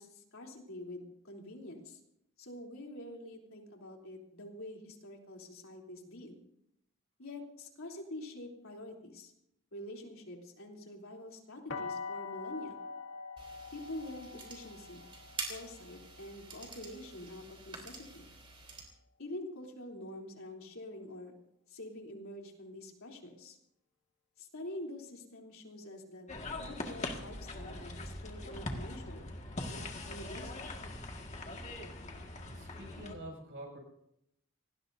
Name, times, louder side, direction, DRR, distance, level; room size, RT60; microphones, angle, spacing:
voice 1, 0.0-2.0 2.4-6.4 7.2-9.3 9.7-12.8 13.7-15.1 15.5-18.3 19.2-21.3 21.7-23.6 24.4-26.3 26.6-29.3 29.7-30.6, left 1 dB, 80° left, 0 dB, 3.4 m, -46 dB
sound 1, 11.7-17.5, left 4 dB, 60° left, 2.2 m, -45 dB
sound 2, 13.4-18.8, right 4 dB, 25° right, 3.8 m, -47 dB
sound 3, 26.3-33.2, left 2 dB, 35° left, 1.8 m, -42 dB
voice 2, 32.4-33.8, right 1 dB, 60° right, 1 dB, 6.4 m, -47 dB
26.5 x 19.0 x 2.7 m, 0.79 s
head